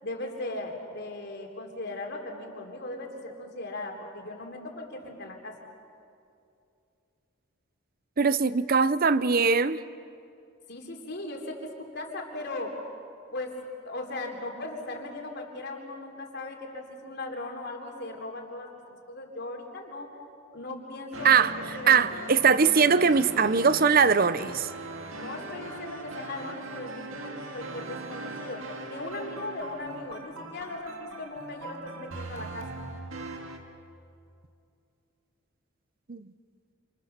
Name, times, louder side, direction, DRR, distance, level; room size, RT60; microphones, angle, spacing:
voice 1, 0.0-5.6 10.7-12.8 13.3-13.5 13.8-20.1 20.5-21.4 21.7-22.3 25.1-32.7, left 2 dB, 50° left, 2 dB, 3.4 m, -38 dB
voice 2, 8.2-9.8 21.2-21.5 21.9-24.7 36.1-36.3, right 5 dB, 45° right, 15 dB, 0.7 m, -21 dB
sound 1, 21.1-33.6, right 2 dB, 70° right, 2.2 m, -40 dB
28.0 x 27.5 x 6.8 m, 2.6 s
head